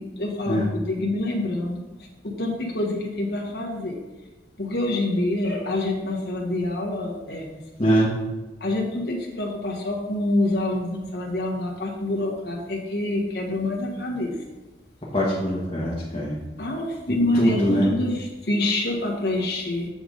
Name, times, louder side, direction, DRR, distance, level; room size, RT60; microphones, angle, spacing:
voice 1, 0.0-1.8 2.2-4.0 4.6-7.6 8.6-14.3 16.6-19.9, left 1 dB, 70° left, -1 dB, 1.4 m, -26 dB
voice 2, 7.8-8.1 15.1-16.4 17.1-17.9, equal, 25° left, -9 dB, 1.4 m, -23 dB
7.9 x 5.2 x 3.9 m, 1.1 s
head